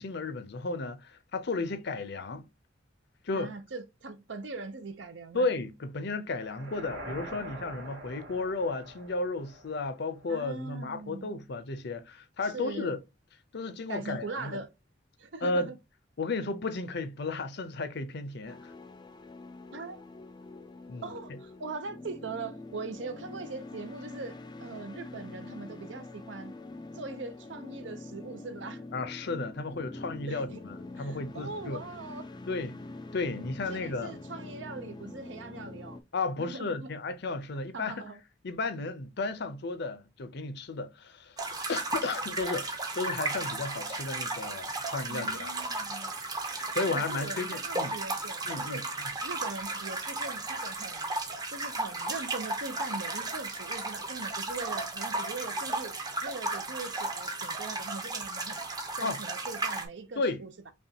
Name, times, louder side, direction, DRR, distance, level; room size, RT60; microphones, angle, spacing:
voice 1, 0.0-2.5 3.2-3.5 5.3-13.0 13.5-14.6 15.4-15.7 16.2-18.7 20.9-21.1 28.9-31.8 32.5-32.8 33.1-34.1 36.1-38.0 38.4-41.4 41.7-45.5 46.4-47.9 48.4-48.8 59.0-59.2 60.2-60.4, left 3 dB, 65° left, 0.6 m, -33 dB
voice 2, 3.3-5.5 6.7-7.5 10.3-11.3 12.5-13.0 13.9-14.7 15.2-15.8 19.7-20.0 21.0-26.5 26.9-28.9 30.3-30.6 31.0-32.3 33.7-36.0 36.4-36.9 37.7-38.2 45.1-46.2 46.8-48.8 49.2-51.1 51.5-56.0 56.2-58.6 59.0-60.5, right 3 dB, 70° right, 0.7 m, -41 dB
sound 1, 6.3-10.5, right 1 dB, 85° right, 1.7 m, -45 dB
sound 2, 18.5-36.0, left 2 dB, 25° left, 0.4 m, -45 dB
sound 3, 41.4-59.9, right 2 dB, 20° right, 0.7 m, -34 dB
5.4 x 2.4 x 2.8 m
head